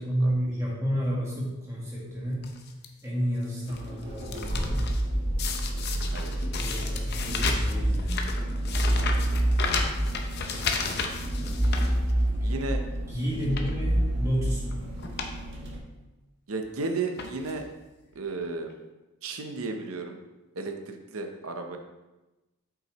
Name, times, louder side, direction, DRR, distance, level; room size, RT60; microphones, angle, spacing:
voice 1, 0.0-2.5 3.0-4.8 6.6-8.2 12.4-12.5 13.1-14.8, equal, 15° right, -6 dB, 1.7 m, -31 dB
sound 1, 2.4-2.9 3.4-5.0 5.4-12.5 12.9-13.0 13.4-13.8 14.6-14.7 15.0-15.3 15.7-15.8 16.6-16.8 17.2-17.7 18.4-18.5 18.7-18.8, left 5 dB, 45° left, 0.6 m, -33 dB
sound 2, 3.7-15.8, right 1 dB, 55° right, 1.2 m, -28 dB
voice 2, 8.9-9.5 12.4-12.8 16.5-17.6 18.1-18.7 19.2-20.2 20.6-21.8, right 3 dB, 70° right, 5 dB, 0.7 m, -34 dB
7.7 x 5.6 x 3.0 m, 1.1 s
head